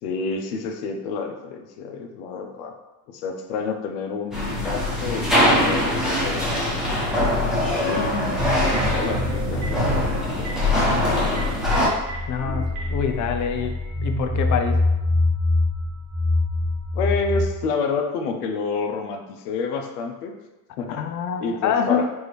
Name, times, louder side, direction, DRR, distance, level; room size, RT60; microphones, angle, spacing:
voice 1, 0.0-2.7 3.1-6.7 7.6-11.4 16.9-20.3 20.8-21.0 21.4-22.1, left 4 dB, 85° left, 5 dB, 0.7 m, -29 dB
sound 1, 4.3-11.9, left 1 dB, ahead, 1.1 m, -22 dB
sound 2, 8.3-17.4, left 2 dB, 35° right, 0.8 m, -26 dB
Telephone, 8.7-9.0 9.5-9.8 10.3-10.5 11.3-12.2 12.7-12.8, right 3 dB, 85° right, 1.5 m, -35 dB
voice 2, 12.3-13.8 14.0-14.8 20.9-22.1, left 7 dB, 40° left, 5 dB, 0.5 m, -25 dB
4.7 x 2.6 x 3.2 m, 1.1 s
supercardioid pair, 95°, 46 cm